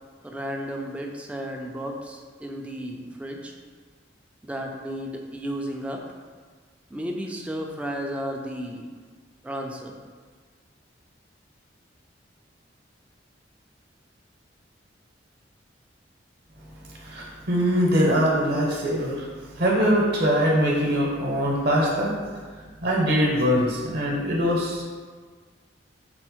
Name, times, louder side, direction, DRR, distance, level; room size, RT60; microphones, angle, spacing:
voice 1, 0.2-3.5 4.4-6.0 6.9-8.9 9.4-9.9, equal, 5° right, 0 dB, 0.3 m, -33 dB
voice 2, 16.8-19.3 19.6-22.1 22.8-24.8, equal, 60° right, -3 dB, 0.8 m, -22 dB
4.2 x 2.0 x 4.4 m, 1.5 s
head